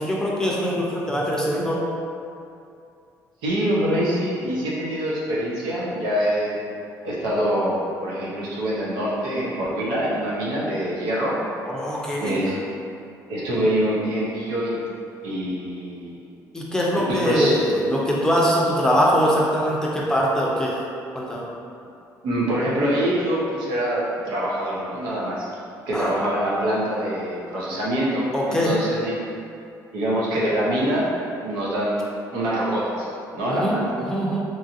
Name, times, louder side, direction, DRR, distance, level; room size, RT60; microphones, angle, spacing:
voice 1, 0.0-1.8 11.6-12.4 16.5-20.8 21.1-21.5 25.9-26.1 28.3-28.7 33.4-33.8 34.1-34.4, equal, 10° left, -5 dB, 0.5 m, -22 dB
voice 2, 3.4-6.6 7.0-11.4 12.2-12.6 13.3-14.8 15.2-16.2 16.9-17.6 22.2-25.5 25.9-29.2 29.9-31.1 31.4-32.0 32.3-33.9, equal, 90° right, -6 dB, 0.7 m, -25 dB
3.1 x 2.5 x 2.6 m, 2.5 s
cardioid pair, 100°, 7 cm